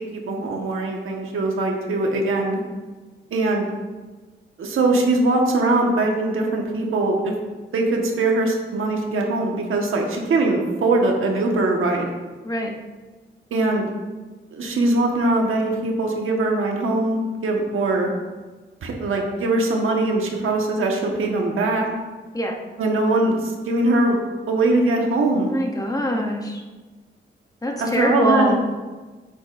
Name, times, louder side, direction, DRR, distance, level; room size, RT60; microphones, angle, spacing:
voice 1, 0.0-2.6 3.3-3.7 4.6-7.3 7.7-12.1 13.5-13.9 14.5-18.1 18.8-21.9 22.8-24.2 24.5-25.5 27.8-28.6, right 2 dB, 80° right, 1 dB, 1.5 m, -21 dB
voice 2, 25.5-26.6 27.6-28.5, equal, 15° left, 2 dB, 0.9 m, -23 dB
10.5 x 8.1 x 2.6 m, 1.3 s
wide cardioid pair, 165°, 21 cm